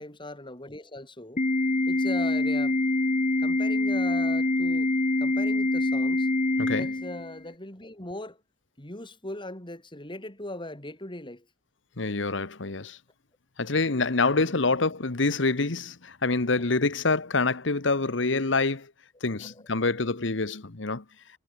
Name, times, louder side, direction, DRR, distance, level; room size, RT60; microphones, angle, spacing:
voice 1, 0.0-1.4 1.9-2.8 3.4-4.9 5.2-6.3 6.8-8.4 8.8-11.4 14.4-14.6 19.5-19.6, left 1 dB, 25° left, 5.2 m, -39 dB
Organ, 1.4-7.4, left 2 dB, 40° left, 1.4 m, -25 dB
voice 2, 6.6-6.9 12.0-13.0 13.6-18.9 19.2-21.0, left 3 dB, 70° left, 1.3 m, -26 dB
head